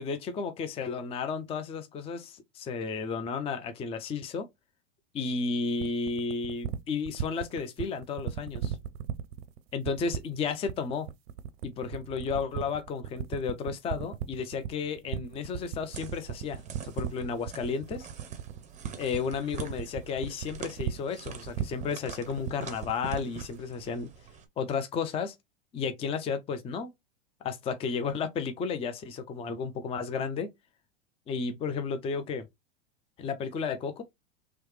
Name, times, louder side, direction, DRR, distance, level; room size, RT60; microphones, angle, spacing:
voice 1, 0.0-4.4 5.1-8.8 9.7-11.1 11.6-18.1 19.0-24.1 24.6-25.3 25.7-26.9 27.4-30.5 31.3-32.5 33.2-34.0, left 5 dB, 15° left, 0.5 m, -33 dB
sound 1, 5.8-23.6, right 10 dB, 55° right, 0.6 m, -35 dB
sound 2, 15.9-24.5, right 6 dB, 20° right, 0.8 m, -46 dB
3.1 x 2.9 x 3.1 m
hypercardioid pair, 95°, 36 cm